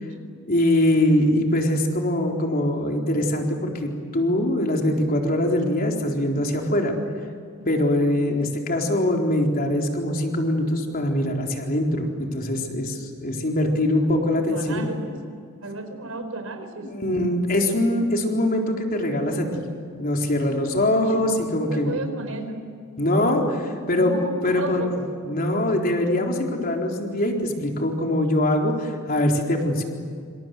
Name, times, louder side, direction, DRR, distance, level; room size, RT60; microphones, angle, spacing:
voice 1, 0.5-6.9 7.7-14.9 16.9-19.6 20.0-22.0 23.0-24.1 24.4-24.8 25.2-29.8, left 1 dB, 45° left, 1 dB, 4.1 m, -23 dB
voice 2, 14.3-15.2 15.6-16.9 20.4-20.5 21.1-21.2 21.5-22.6 23.9-24.9, right 2 dB, 75° right, 7 dB, 4.5 m, -34 dB
27.0 x 26.5 x 7.9 m, 2.2 s
head